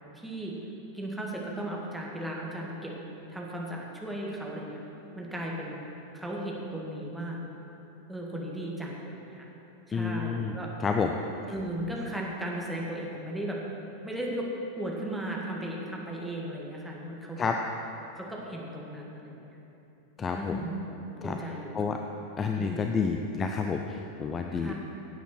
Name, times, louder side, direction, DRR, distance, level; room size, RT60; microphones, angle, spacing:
voice 1, 0.1-0.6 0.9-2.9 3.3-4.8 5.2-5.8 6.1-7.4 8.1-9.5 9.9-10.7 11.5-13.6 14.0-14.5 14.8-17.4 18.2-19.6 20.3-21.8 22.6-22.9 24.6-24.7, right 1 dB, 5° right, -3 dB, 1.9 m, -36 dB
voice 2, 9.9-10.5 10.8-11.2 17.4-17.5 20.2-20.7 21.2-21.4 21.7-22.0 22.4-24.7, left 5 dB, 20° left, 4 dB, 0.6 m, -29 dB
17.0 x 8.4 x 4.5 m, 3.0 s
figure-of-eight pair, 90°, 0 cm